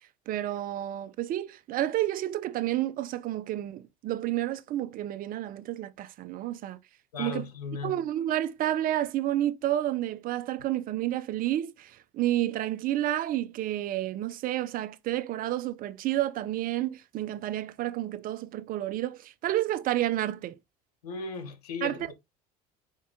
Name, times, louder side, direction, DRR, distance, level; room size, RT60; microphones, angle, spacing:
voice 1, 0.3-6.8 7.2-7.5 7.8-20.6 21.8-22.0, right 13 dB, 45° right, 0.6 m, -30 dB
voice 2, 7.1-8.0 21.0-22.1, left 4 dB, 85° left, 1.1 m, -36 dB
4.5 x 2.8 x 3.5 m
hypercardioid pair, 75°, 20 cm